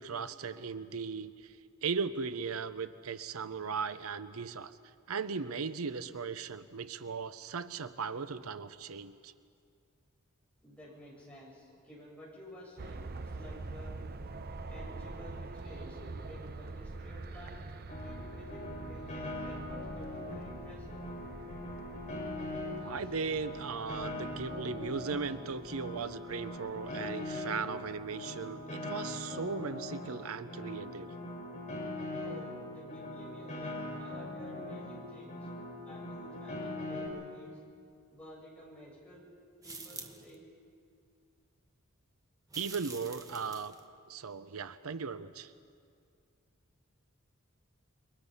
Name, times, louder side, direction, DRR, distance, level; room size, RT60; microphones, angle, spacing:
voice 1, 0.0-4.8 5.1-9.3 22.8-31.1 42.5-43.7 44.1-45.5, right 5 dB, 90° right, 12 dB, 0.7 m, -37 dB
voice 2, 10.6-14.0 14.7-17.6 17.9-21.0 23.0-23.2 32.2-35.5 35.8-37.6 38.1-39.3 39.6-40.5, equal, 5° left, -5 dB, 7.7 m, -52 dB
sound 1, 12.8-28.0 28.6-28.7, right 3 dB, 45° right, 0.7 m, -46 dB
Piano, 17.9-37.1, left 1 dB, 35° left, 5.7 m, -41 dB
sound 2, 39.6-40.3 42.5-43.8, right 4 dB, 15° right, 1.5 m, -47 dB
28.5 x 23.5 x 5.6 m, 2.3 s
head